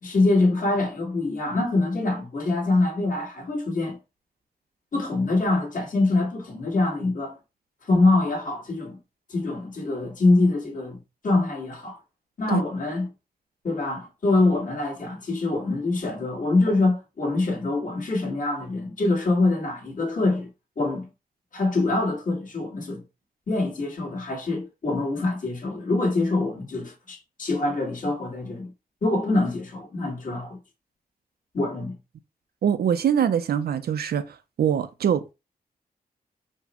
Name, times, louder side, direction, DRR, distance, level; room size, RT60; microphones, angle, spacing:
voice 1, 0.0-4.0 4.9-7.4 7.9-9.0 9.3-11.0 11.2-12.0 12.4-13.1 13.6-20.5 20.8-21.1 21.5-23.0 23.5-28.7 29.0-30.6 31.5-31.9, left 2 dB, 60° left, 1.8 m, -24 dB
voice 2, 32.6-34.3 34.6-35.3, right 8 dB, 85° right, 0.5 m, -23 dB
4.6 x 2.1 x 4.2 m
wide cardioid pair, 135°, 16 cm